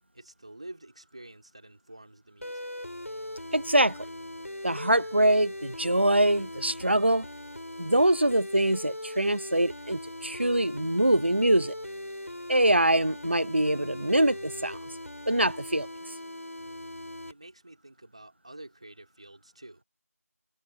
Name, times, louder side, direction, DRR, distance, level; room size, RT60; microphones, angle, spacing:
voice 1, 0.1-2.7 17.2-19.8, right 1 dB, 20° right, 3.8 m, -48 dB
sound 1, 2.4-17.3, left 1 dB, 60° left, 4.6 m, -40 dB
voice 2, 3.5-4.0 4.6-7.3 7.8-11.7 12.5-14.8 15.3-15.9, right 1 dB, 45° right, 0.7 m, -24 dB
Water tap faucet / Bathtub (filling or washing), 5.4-17.7 18.3-18.4 18.9-19.0, right 8 dB, 5° right, 7.5 m, -69 dB
figure-of-eight pair, 175°, 9 cm